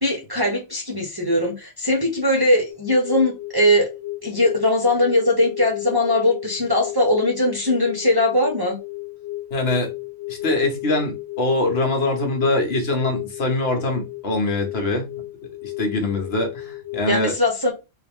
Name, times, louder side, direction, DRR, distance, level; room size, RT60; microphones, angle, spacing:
voice 1, 0.0-3.9 4.2-8.8 17.1-17.7, left 1 dB, 25° right, 0.7 m, -20 dB
sound 1, 2.7-17.1, left 18 dB, 90° left, 0.9 m, -34 dB
voice 2, 9.5-9.9 10.3-15.1 15.6-17.4, left 2 dB, 60° left, 1.2 m, -23 dB
3.7 x 2.4 x 3.5 m
omnidirectional pair, 1.2 m